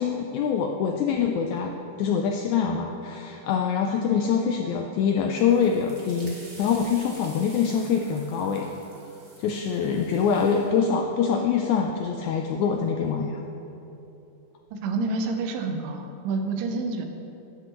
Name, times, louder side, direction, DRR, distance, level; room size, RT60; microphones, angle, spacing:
voice 1, 0.0-1.7 2.0-8.7 9.4-13.4, left 6 dB, 80° left, 3 dB, 1.7 m, -24 dB
sound 1, 5.3-10.7, right 2 dB, 65° right, 0.5 m, -49 dB
voice 2, 14.7-17.1, right 3 dB, 85° right, 5 dB, 2.4 m, -28 dB
11.0 x 9.1 x 3.0 m, 3.0 s
omnidirectional pair, 3.8 m